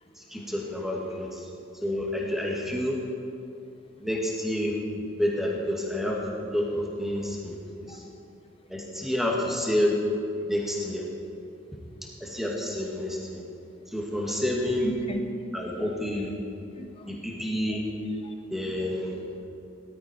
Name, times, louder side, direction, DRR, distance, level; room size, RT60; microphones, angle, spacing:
voice 1, 0.3-1.3 1.8-3.0 4.0-7.9 8.7-9.9 10.5-11.0 12.2-13.4 13.9-14.9 15.5-16.3 17.1-17.8 18.5-19.1, left 1 dB, ahead, -3 dB, 2.1 m, -29 dB
voice 2, 14.8-15.3 16.1-16.3 16.7-17.1 18.2-18.3 19.1-19.4, equal, 30° left, 5 dB, 1.1 m, -37 dB
18.5 x 13.0 x 4.5 m, 2.7 s
head